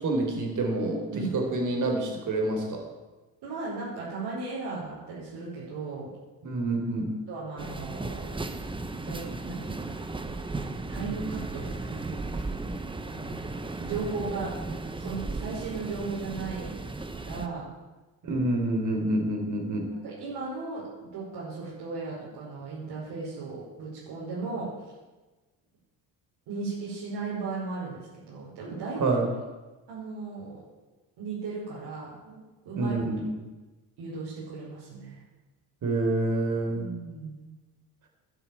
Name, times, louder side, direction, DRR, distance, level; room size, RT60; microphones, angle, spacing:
voice 1, 0.0-2.9 6.4-7.1 18.2-19.9 29.0-29.3 32.8-33.3 35.8-36.9, right 2 dB, 50° right, 2 dB, 4.3 m, -27 dB
voice 2, 3.4-6.1 7.3-8.4 9.0-10.0 10.9-12.5 13.1-14.6 15.0-16.8 17.1-17.6 20.0-24.7 26.5-29.0 29.9-30.6 31.2-32.9 34.0-35.2 36.7-37.5, right 4 dB, 90° right, -8 dB, 5.4 m, -36 dB
sound 1, 7.6-17.5, right 3 dB, 15° right, 1.0 m, -35 dB
12.0 x 10.0 x 8.9 m, 1.2 s
cardioid pair, 135°, 38 cm